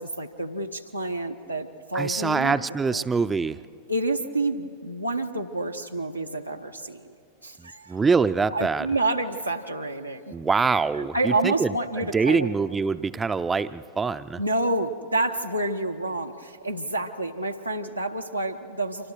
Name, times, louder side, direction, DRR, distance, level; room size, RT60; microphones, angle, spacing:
voice 1, 0.0-2.6 2.9-3.0 3.9-7.1 7.4-8.0 8.5-10.3 11.0-12.5 14.4-19.1, right 2 dB, 90° right, 2 dB, 0.9 m, -28 dB
voice 2, 1.9-3.6 7.6-8.9 10.3-14.4, right 4 dB, 15° right, 13 dB, 0.5 m, -25 dB
28.5 x 25.0 x 4.6 m, 2.3 s
figure-of-eight pair, 90°, 0 cm